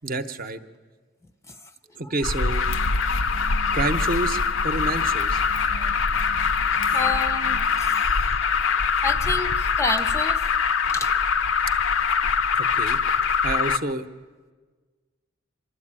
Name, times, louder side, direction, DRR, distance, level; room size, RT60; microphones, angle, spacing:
voice 1, 0.0-0.6 1.9-2.6 3.7-5.4 12.6-13.0 13.4-14.1, right 2 dB, 40° right, 8 dB, 0.8 m, -28 dB
Alarm, 2.2-13.8, left 5 dB, 60° left, 0.6 m, -23 dB
sound 1, 2.7-8.0, right 5 dB, 70° right, 0.8 m, -44 dB
voice 2, 6.7-8.3 9.0-10.4 10.9-11.1, left 2 dB, 15° left, 9 dB, 0.5 m, -30 dB
25.0 x 12.5 x 8.8 m, 1.4 s
head